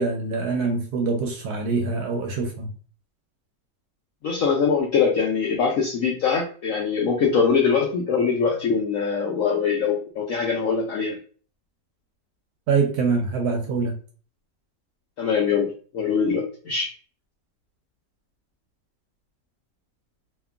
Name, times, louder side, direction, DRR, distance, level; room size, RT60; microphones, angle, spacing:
voice 1, 0.0-2.7 12.7-13.9, right 4 dB, 70° right, 3 dB, 1.0 m, -24 dB
voice 2, 4.2-11.2 15.2-15.7 15.9-16.9, left 5 dB, 75° left, -1 dB, 0.7 m, -22 dB
2.8 x 2.4 x 2.3 m, 0.40 s
omnidirectional pair, 1.9 m